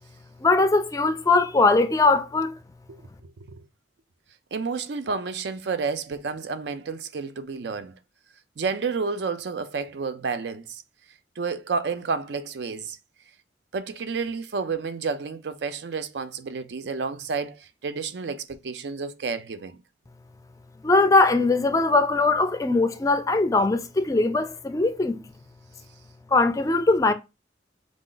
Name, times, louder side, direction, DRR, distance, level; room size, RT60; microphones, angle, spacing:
voice 1, 0.4-2.6 20.8-25.2 26.3-27.1, left 3 dB, 20° left, 0.3 m, -20 dB
voice 2, 3.2-3.6 4.5-7.9 8.6-10.8 11.4-13.0 13.7-19.8, right 5 dB, 70° right, 0.5 m, -30 dB
4.9 x 2.4 x 3.8 m
head